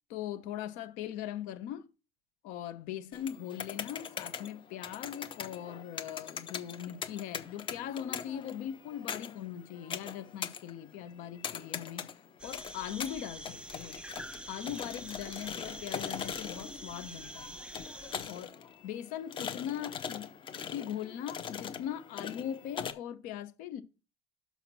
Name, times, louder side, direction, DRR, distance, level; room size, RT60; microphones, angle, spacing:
voice 1, 0.1-1.9 2.4-12.1 12.4-14.0 14.5-17.6 18.3-18.6 18.8-20.3 20.6-23.8, left 10 dB, 80° left, 1.0 m, -40 dB
sound 1, 3.1-22.9, left 7 dB, 40° left, 0.9 m, -42 dB
sound 2, 12.4-18.5, right 1 dB, 5° right, 0.7 m, -46 dB
5.8 x 5.8 x 6.1 m
cardioid pair, 110°, 14 cm